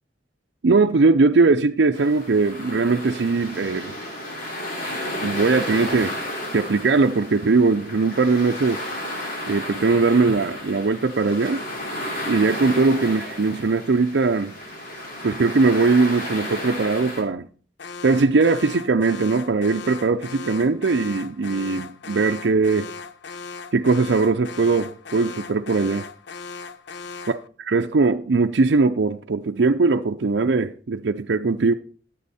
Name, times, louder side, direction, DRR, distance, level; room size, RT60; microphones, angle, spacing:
voice 1, 0.6-4.0 5.2-6.2 6.5-8.8 9.5-11.6 12.3-14.5 15.2-17.5 18.0-22.9 23.7-26.0 27.3-27.4 27.7-31.7, right 3 dB, 70° right, 0.5 m, -20 dB
sound 1, 1.9-17.2, left 1 dB, 55° left, 3.3 m, -32 dB
Alarm, 17.8-27.5, left 4 dB, 70° left, 0.7 m, -38 dB
13.0 x 8.4 x 4.2 m
head